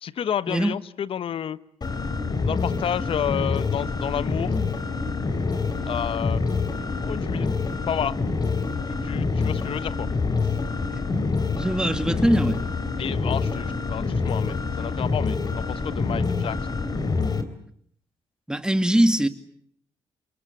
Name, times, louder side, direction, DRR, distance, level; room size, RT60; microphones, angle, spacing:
voice 1, 0.0-1.6 2.4-4.5 5.9-6.4 7.0-7.5 7.9-8.2 8.9-10.1 13.0-16.8, left 9 dB, 65° left, 1.1 m, -30 dB
sound 1, 1.8-17.4, left 4 dB, 40° left, 3.7 m, -26 dB
voice 2, 11.5-12.6 18.5-19.3, right 1 dB, 5° right, 2.4 m, -22 dB
28.0 x 22.5 x 8.4 m
supercardioid pair, 65°, 10 cm